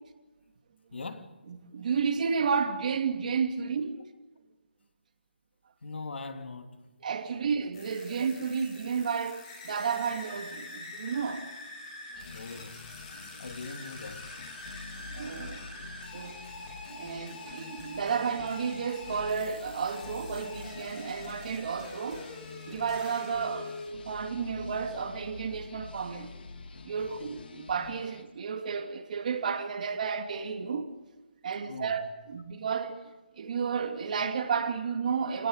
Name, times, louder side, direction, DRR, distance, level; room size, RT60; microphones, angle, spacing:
voice 1, 0.9-1.3 5.8-6.9 12.3-12.8 13.4-14.3 27.0-27.2 31.7-32.0, left 3 dB, 80° left, 3.1 m, -41 dB
voice 2, 1.5-4.0 7.0-11.4 15.1-15.7 16.1-16.4 16.9-22.3 22.7-26.3 26.8-30.9 31.4-35.5, right 6 dB, 45° right, 2.6 m, -32 dB
sound 1, 7.7-23.9, left 2 dB, 30° left, 6.3 m, -45 dB
sound 2, 12.1-28.2, left 4 dB, 60° left, 2.7 m, -47 dB
29.5 x 19.0 x 8.1 m
hypercardioid pair, 170°, 6 cm